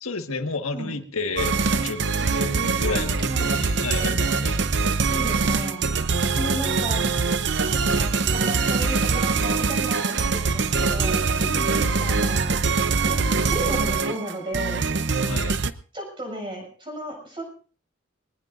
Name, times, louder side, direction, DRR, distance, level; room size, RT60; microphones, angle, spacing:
voice 1, 0.0-2.0 2.3-4.6 11.3-12.2 15.2-15.6, left 3 dB, 90° left, 4 dB, 1.7 m, -31 dB
sound 1, 1.4-15.7, right 4 dB, 55° right, 0.7 m, -23 dB
voice 2, 2.9-3.5 5.1-5.8 6.2-7.1 7.7-11.4 12.0-12.6 13.0-14.8 15.9-17.4, equal, 25° right, 0 dB, 7.2 m, -34 dB
22.5 x 19.5 x 2.6 m, 0.41 s
head